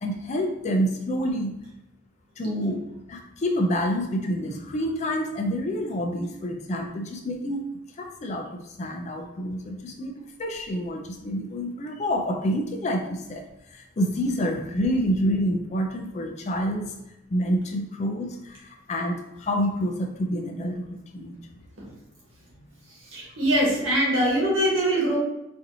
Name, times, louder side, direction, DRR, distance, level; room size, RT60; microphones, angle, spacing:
voice 1, 0.0-1.5 2.4-2.8 3.1-7.6 8.0-10.1 10.4-13.4 13.7-16.9 17.3-21.4 22.6-22.7, equal, 35° left, 3 dB, 0.4 m, -28 dB
voice 2, 22.9-25.2, right 1 dB, 75° right, -4 dB, 1.4 m, -23 dB
4.3 x 2.6 x 2.7 m, 0.91 s
head